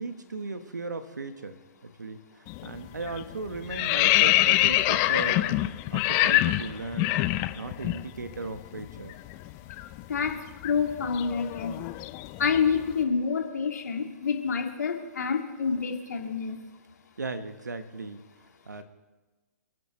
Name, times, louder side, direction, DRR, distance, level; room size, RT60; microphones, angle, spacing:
voice 1, 0.0-5.6 5.9-7.1 7.5-9.2 17.2-18.2 18.7-18.8, right 3 dB, 85° right, 10 dB, 1.4 m, -37 dB
sound 1, 2.5-2.8 3.1-8.0 8.3-8.5 8.8-12.8, left 16 dB, 30° left, 0.6 m, -25 dB
voice 2, 10.1-11.7 12.4-16.6, left 6 dB, 70° left, 3 dB, 2.4 m, -28 dB
29.0 x 11.0 x 3.2 m, 1.2 s
figure-of-eight pair, 120°, 9 cm